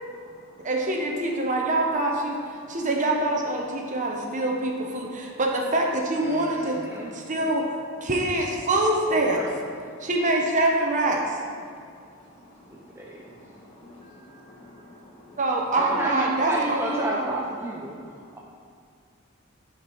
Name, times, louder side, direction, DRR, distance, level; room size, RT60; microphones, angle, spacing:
voice 1, 0.6-6.8 7.1-7.7 8.0-9.5 10.0-11.4 15.4-17.3, right 2 dB, 40° right, 0.9 m, -25 dB
voice 2, 6.2-7.1 7.4-7.5 9.3-9.5 12.7-13.2 15.8-18.0, right 1 dB, 10° right, 0.6 m, -31 dB
voice 3, 12.2-12.5 13.2-15.4 18.1-18.3, left 1 dB, 35° left, 2.4 m, -50 dB
11.5 x 5.4 x 4.1 m
head